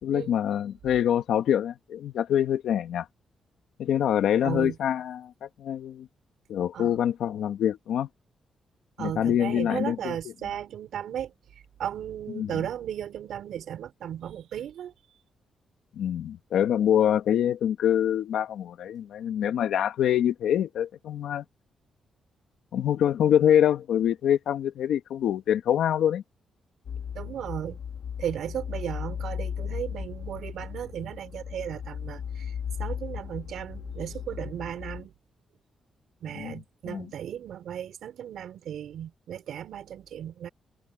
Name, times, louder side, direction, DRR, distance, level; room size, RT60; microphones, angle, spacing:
voice 1, 0.0-3.1 3.8-6.1 6.5-8.1 9.0-10.2 12.3-12.5 16.0-21.4 22.7-26.2 36.3-36.5 36.9-37.1, left 10 dB, 85° left, 2.0 m, -25 dB
voice 2, 4.4-4.8 6.7-6.9 9.0-11.3 11.8-14.9 27.1-27.8 28.2-32.5 32.8-35.1 36.2-40.5, right 10 dB, 75° right, 4.7 m, -35 dB
sound 1, 26.8-35.0, left 8 dB, 60° left, 2.5 m, -36 dB
wide cardioid pair, 160°, 0 cm